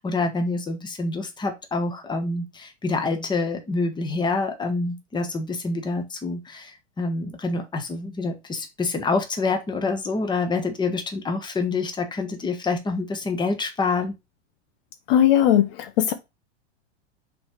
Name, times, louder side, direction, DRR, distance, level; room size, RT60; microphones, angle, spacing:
voice 1, 0.0-14.1, left 3 dB, 15° left, 1.3 m, -27 dB
voice 2, 15.1-15.7 16.1-16.2, left 11 dB, 55° left, 0.9 m, -17 dB
6.0 x 3.4 x 5.0 m
hypercardioid pair, 125°, 34 cm